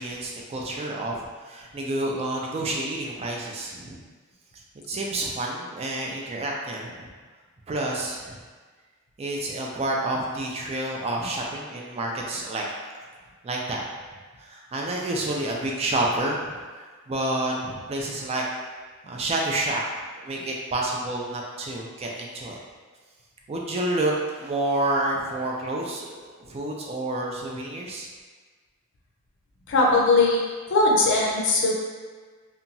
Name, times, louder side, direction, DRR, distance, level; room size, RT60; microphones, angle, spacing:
voice 1, 0.0-4.0 4.9-7.1 7.7-8.4 9.2-12.6 13.4-13.8 14.4-18.4 19.0-19.8 20.1-22.6 23.5-28.1, right 2 dB, 30° right, -1 dB, 0.3 m, -29 dB
voice 2, 29.7-30.4 30.7-31.7, left 2 dB, 60° left, -2 dB, 0.5 m, -19 dB
2.8 x 2.2 x 2.6 m, 1.4 s
head